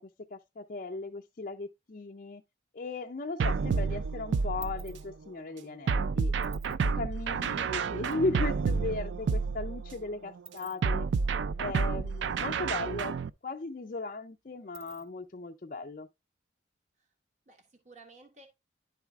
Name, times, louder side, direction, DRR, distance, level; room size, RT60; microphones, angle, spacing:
voice 1, 0.0-2.4 2.7-6.3 6.8-11.1 11.6-13.1 13.4-16.1, left 3 dB, 45° left, 0.5 m, -37 dB
sound 1, 3.0-3.7 4.0-8.3 8.6-8.7 8.9-12.7 13.0-13.1 13.4-15.4, right 7 dB, 85° right, 1.1 m, -54 dB
sound 2, 3.4-5.1 5.9-10.0 10.8-13.3, right 5 dB, 70° right, 0.4 m, -30 dB
voice 2, 7.6-8.0 17.0-17.1 17.5-18.5, right 3 dB, 35° right, 1.3 m, -55 dB
10.5 x 4.0 x 3.5 m
head